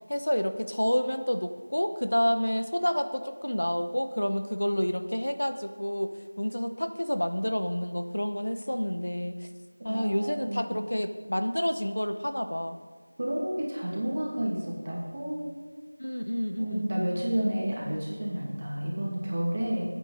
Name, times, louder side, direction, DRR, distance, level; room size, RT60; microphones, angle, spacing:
voice 1, 0.1-9.5 9.8-12.8 16.0-16.9, equal, 80° left, 8 dB, 1.1 m, -29 dB
voice 2, 9.8-10.8 13.2-15.4 16.6-19.8, right 1 dB, 30° right, -3 dB, 2.2 m, -31 dB
20.5 x 8.8 x 4.1 m, 1.5 s
figure-of-eight pair, 175°, 0 cm